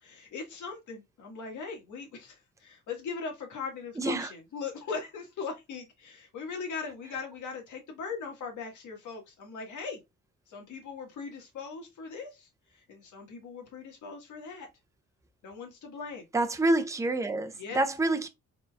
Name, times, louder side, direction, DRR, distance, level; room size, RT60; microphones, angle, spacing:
voice 1, 0.0-10.0 10.5-14.7 15.4-16.3 17.6-17.8, left 5 dB, 80° left, 1.8 m, -40 dB
voice 2, 4.0-4.3 16.3-18.3, right 2 dB, 10° right, 0.6 m, -27 dB
4.1 x 3.9 x 2.3 m
cardioid pair, 95°, 30 cm